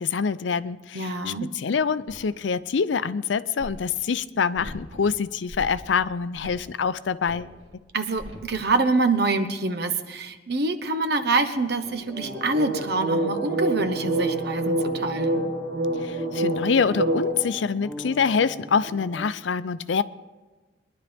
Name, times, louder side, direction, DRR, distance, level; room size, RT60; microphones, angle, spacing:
voice 1, 0.0-7.5 16.0-20.0, left 6 dB, 80° left, 15 dB, 0.5 m, -25 dB
voice 2, 0.9-1.5 7.9-15.4, right 3 dB, 60° right, 9 dB, 1.0 m, -26 dB
sound 1, 2.1-2.2 3.6-3.7 4.6-5.1 5.5-5.9 6.4-6.6 7.3-7.4 8.2-8.5 12.1-17.3, right 2 dB, 85° right, 2.1 m, -27 dB
sound 2, 11.8-19.3, left 2 dB, 5° right, 1.3 m, -41 dB
22.0 x 11.0 x 3.5 m, 1.2 s
head